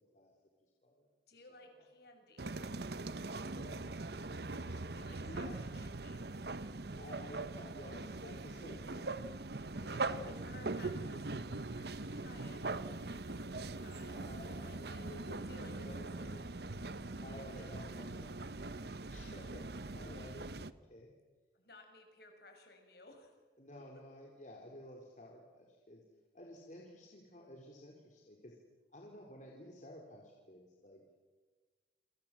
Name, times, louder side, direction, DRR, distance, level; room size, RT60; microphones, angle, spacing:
voice 1, 1.3-2.6 4.9-6.2 9.6-15.1 15.4-16.4 17.5-18.4 21.5-23.4, left 2 dB, 60° left, 4 dB, 6.5 m, -59 dB
sound 1, 2.4-20.7, right 3 dB, 60° right, 1.0 m, -42 dB
voice 2, 3.4-4.8 5.3-5.6 6.9-9.3 9.8-10.4 13.9-16.4 17.2-18.1 18.8-20.5 20.9-21.1 23.6-26.0 26.3-28.6 28.9-31.0, left 1 dB, 40° left, -1 dB, 4.0 m, -53 dB
29.0 x 26.5 x 7.6 m, 1.3 s
head